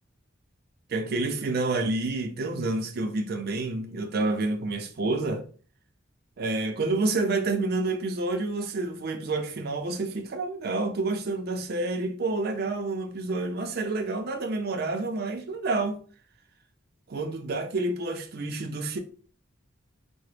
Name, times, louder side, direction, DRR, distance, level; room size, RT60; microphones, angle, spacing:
voice 1, 0.9-5.4 6.4-16.0 17.1-19.0, right 2 dB, 50° right, 0.4 m, -29 dB
3.7 x 2.0 x 3.2 m
head